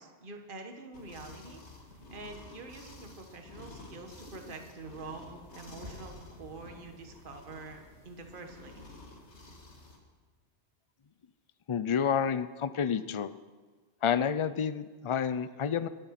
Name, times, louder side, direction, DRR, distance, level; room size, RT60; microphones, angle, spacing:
voice 1, 0.0-1.6 2.1-8.9, right 3 dB, 50° right, 4 dB, 1.6 m, -46 dB
sound 1, 0.9-10.0, left 2 dB, 75° left, 2.3 m, -51 dB
sound 2, 5.8-10.8 11.0-11.1, left 1 dB, 20° right, 3.1 m, -55 dB
voice 2, 11.7-13.3 14.0-15.9, left 7 dB, 40° left, 13 dB, 0.4 m, -29 dB
23.5 x 8.7 x 5.9 m, 1.4 s
omnidirectional pair, 1.2 m